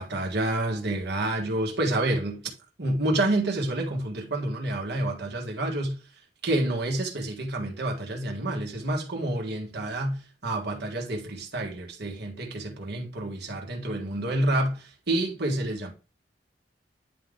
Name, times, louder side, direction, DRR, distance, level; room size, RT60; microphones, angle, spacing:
voice 1, 0.0-2.5 2.8-6.0 6.4-15.9, right 1 dB, 65° right, 1.7 m, -28 dB
10.5 x 3.7 x 3.8 m
head